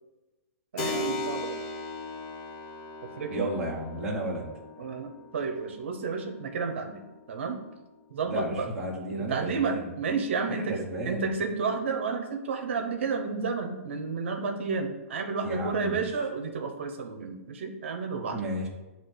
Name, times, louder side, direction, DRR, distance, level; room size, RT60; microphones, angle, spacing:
voice 1, 0.7-1.6 3.0-3.5 4.8-7.0 7.3-7.6 8.1-8.7 9.1-18.4, right 5 dB, 55° right, 4 dB, 0.9 m, -31 dB
Keyboard (musical), 0.8-9.0, left 2 dB, 30° left, 0.8 m, -39 dB
voice 2, 3.3-4.5 8.3-9.9 10.5-11.3 15.4-16.0 18.3-18.7, right 1 dB, 5° right, -6 dB, 0.9 m, -33 dB
8.0 x 2.9 x 6.0 m, 1.1 s
hypercardioid pair, 175°, 8 cm